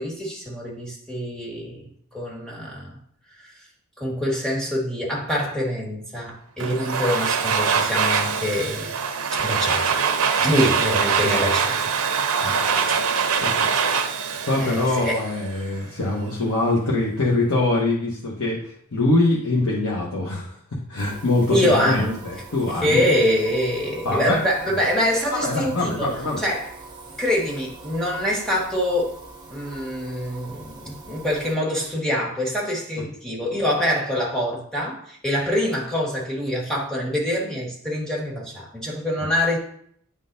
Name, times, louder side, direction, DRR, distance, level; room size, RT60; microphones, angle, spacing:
voice 1, 0.0-1.8 2.1-2.9 3.4-3.5 4.0-8.9 9.3-10.0 10.4-11.8 12.9-13.0 14.6-15.2 21.5-22.2 22.8-26.1 26.4-26.7 27.2-29.1 29.5-39.6, left 1 dB, 5° left, -5 dB, 1.5 m, -25 dB
Domestic sounds home sounds, 6.6-15.5, right 6 dB, 85° right, 0.6 m, -23 dB
voice 2, 12.4-13.7 14.4-20.6 20.9-23.0 24.0-24.4 25.3-26.4, left 2 dB, 85° left, -4 dB, 1.1 m, -24 dB
sound 1, 21.0-31.6, right 3 dB, 20° right, 0.9 m, -43 dB
9.7 x 3.7 x 2.6 m, 0.64 s
head